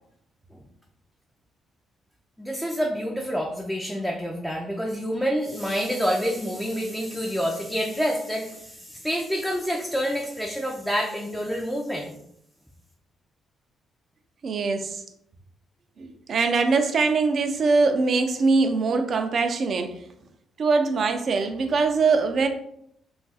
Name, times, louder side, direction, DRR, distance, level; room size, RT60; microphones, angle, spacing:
voice 1, 2.4-12.2, equal, ahead, -1 dB, 0.5 m, -28 dB
voice 2, 14.4-15.0 16.0-19.9 20.6-22.5, right 4 dB, 55° right, 6 dB, 0.4 m, -22 dB
2.4 x 2.3 x 4.0 m, 0.73 s
cardioid pair, 75°, 0 cm